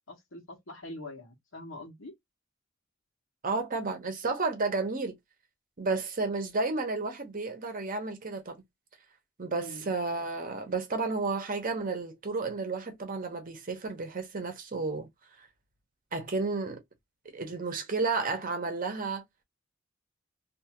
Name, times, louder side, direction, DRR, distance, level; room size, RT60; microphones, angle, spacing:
voice 1, 0.1-2.1 9.5-9.9, left 1 dB, 80° left, 1.1 m, -44 dB
voice 2, 3.4-5.1 5.8-8.6 9.4-15.1 15.4-15.5 16.1-16.8 17.2-19.2, right 3 dB, 45° right, 0.9 m, -32 dB
2.7 x 2.4 x 2.9 m
head